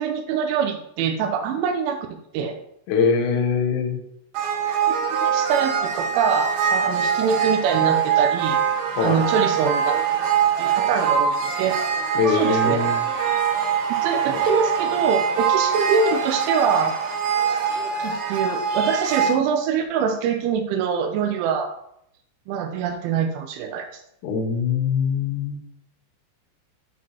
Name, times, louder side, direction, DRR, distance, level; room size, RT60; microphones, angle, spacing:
voice 1, 0.0-2.1 2.3-2.6 4.9-8.6 9.0-9.9 10.6-11.8 12.3-12.8 14.0-16.9 17.5-21.7 22.5-24.0, right 6 dB, 85° right, 4 dB, 3.0 m, -24 dB
voice 2, 2.9-4.0 9.0-9.2 12.2-13.0 14.3-14.4 24.2-25.6, left 5 dB, 75° left, 4 dB, 3.1 m, -22 dB
sound 1, 4.3-19.3, right 7 dB, 70° right, 2.5 m, -23 dB
11.0 x 4.2 x 2.9 m, 0.77 s
omnidirectional pair, 5.4 m